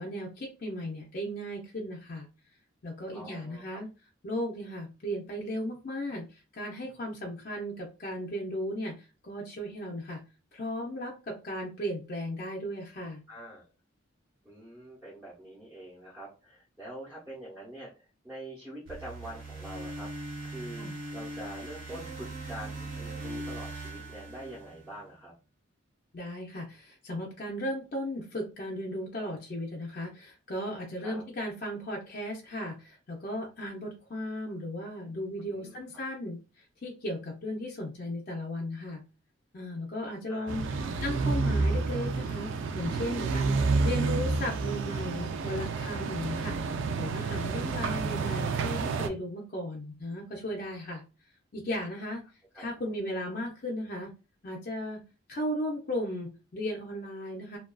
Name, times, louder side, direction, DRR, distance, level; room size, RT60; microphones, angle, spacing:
voice 1, 0.0-2.3 2.8-3.9 4.2-6.3 6.5-9.0 9.2-10.2 10.5-13.2 20.8-20.9 26.1-36.4 36.8-39.0 39.5-40.6 41.0-42.5 42.7-46.6 47.0-51.0 51.5-52.2 52.6-54.1 54.4-55.0 55.3-57.6, equal, 45° left, -1 dB, 0.5 m, -36 dB
voice 2, 3.1-3.8 13.3-13.7 14.4-25.3 31.0-31.2 35.4-35.8 40.3-40.9 47.8-48.2 51.9-52.0 52.5-52.9, right 1 dB, 10° right, -8 dB, 0.8 m, -45 dB
sound 1, 18.9-25.0, right 2 dB, 85° right, 1.3 m, -40 dB
sound 2, 40.5-49.1, right 4 dB, 65° right, 0.3 m, -29 dB
2.4 x 2.3 x 2.2 m, 0.32 s
head